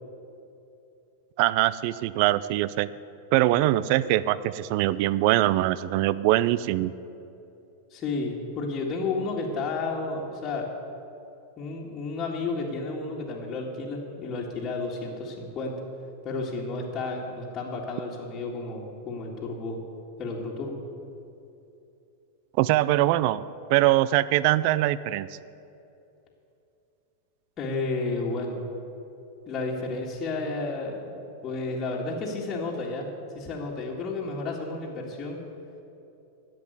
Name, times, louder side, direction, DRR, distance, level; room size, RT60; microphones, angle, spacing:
voice 1, 1.4-2.9 3.3-6.9 22.6-23.4 23.7-25.3, right 15 dB, 55° right, 17 dB, 0.4 m, -22 dB
voice 2, 7.9-10.7 11.6-15.7 16.2-19.8 20.2-20.8 27.6-28.6 29.5-33.1 33.3-35.4, left 3 dB, 30° left, -5 dB, 2.0 m, -32 dB
11.0 x 7.7 x 9.4 m, 2.8 s
hypercardioid pair, 125°, 0 cm